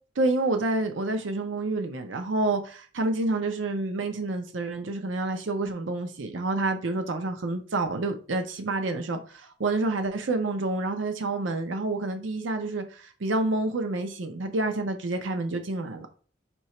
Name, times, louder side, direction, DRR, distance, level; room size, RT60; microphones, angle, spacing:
voice 1, 0.2-16.1, right 2 dB, 85° right, 0.6 m, -28 dB
4.5 x 2.8 x 4.2 m
head